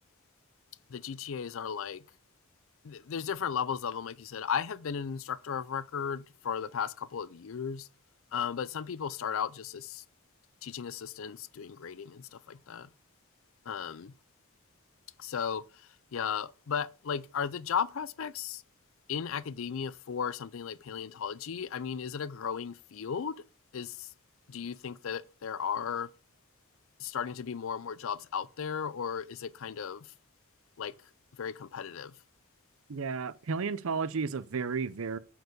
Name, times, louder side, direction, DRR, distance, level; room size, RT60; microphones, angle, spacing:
voice 1, 0.9-2.0 2.8-7.9 8.3-10.0 10.6-12.9 13.7-14.1 15.2-15.6 16.1-18.6 19.1-23.4 23.7-24.1 24.5-26.1 27.0-30.1 30.8-30.9 31.4-32.1, left 7 dB, 60° left, 0.5 m, -35 dB
voice 2, 32.9-35.2, right 5 dB, 65° right, 0.6 m, -33 dB
8.1 x 4.7 x 6.5 m
head